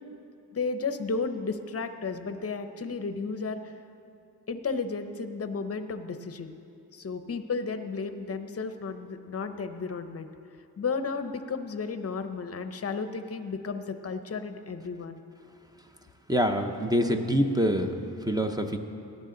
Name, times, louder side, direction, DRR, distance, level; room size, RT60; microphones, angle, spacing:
voice 1, 0.5-3.7 4.5-6.6 6.9-10.3 10.8-15.2, left 4 dB, 35° left, 9 dB, 0.8 m, -33 dB
voice 2, 16.3-18.0 18.3-18.8, equal, 10° right, 5 dB, 0.7 m, -25 dB
17.5 x 11.5 x 3.9 m, 2.6 s
wide cardioid pair, 110°, 42 cm